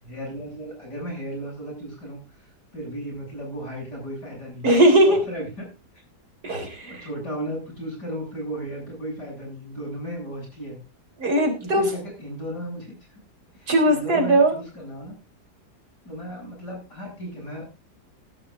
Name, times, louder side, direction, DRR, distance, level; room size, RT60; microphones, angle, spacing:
voice 1, 0.0-2.2 2.7-4.7 5.1-5.7 6.8-10.8 11.6-13.0 13.6-15.2 16.0-17.8, right 1 dB, 80° left, -5 dB, 8.2 m, -35 dB
voice 2, 4.6-5.2 6.4-7.0 11.2-11.9 13.7-14.5, right 1 dB, 65° right, 2 dB, 4.3 m, -19 dB
18.5 x 11.0 x 2.6 m, 0.29 s
omnidirectional pair, 1.8 m